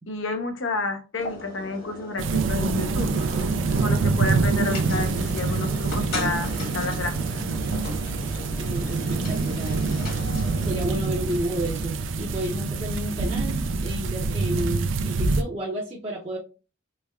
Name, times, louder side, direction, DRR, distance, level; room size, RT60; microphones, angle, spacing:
voice 1, 0.1-3.2 3.8-7.4, left 3 dB, 75° left, 0.7 m, -30 dB
sound 1, 1.2-13.8, left 1 dB, 50° left, 1.3 m, -38 dB
sound 2, 2.2-15.4, right 4 dB, 75° right, 0.4 m, -26 dB
voice 2, 8.6-9.9 10.6-16.4, right 1 dB, 30° right, 0.6 m, -31 dB
3.3 x 3.3 x 2.2 m
head